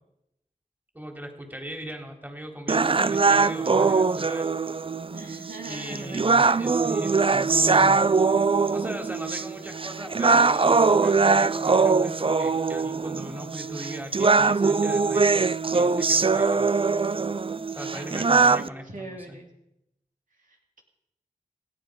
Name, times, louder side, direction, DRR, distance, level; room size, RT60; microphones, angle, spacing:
voice 1, 0.9-4.5 5.6-8.0 8.7-15.5 15.7-16.7 17.8-19.4, equal, 10° right, 2 dB, 3.8 m, -38 dB
sound 1, 2.7-18.7, right 4 dB, 40° right, 0.5 m, -22 dB
voice 2, 5.1-6.3 17.9-18.3 18.5-19.5 20.3-20.8, right 2 dB, 65° right, 0 dB, 2.9 m, -42 dB
27.0 x 10.0 x 5.3 m, 0.84 s
cardioid pair, 40°, 15 cm